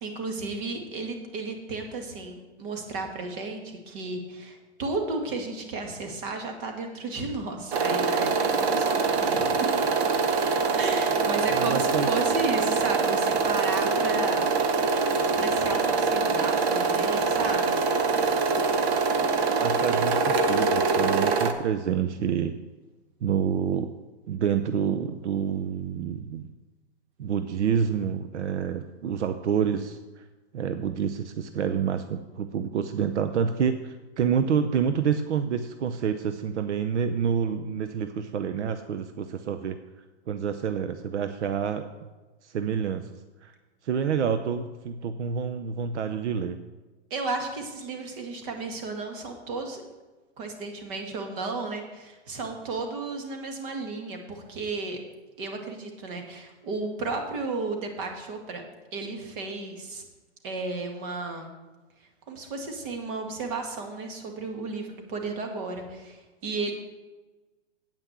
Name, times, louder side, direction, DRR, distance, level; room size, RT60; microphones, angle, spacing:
voice 1, 0.0-9.5 10.7-14.4 15.4-17.8 47.1-49.8 50.4-55.0 55.4-58.6 58.9-60.0 60.4-61.5 62.3-66.7, right 3 dB, 50° right, 4 dB, 2.2 m, -33 dB
sound 1, 7.7-21.5, right 4 dB, 65° right, 1.2 m, -24 dB
voice 2, 11.5-12.1 19.6-22.5 23.2-23.9 24.3-26.5 27.2-30.0 30.5-39.8 40.3-41.9 42.4-43.0 43.4-43.5 43.8-46.6, right 7 dB, 85° right, 9 dB, 0.7 m, -28 dB
8.9 x 5.8 x 8.1 m, 1.2 s
hypercardioid pair, 130°, 34 cm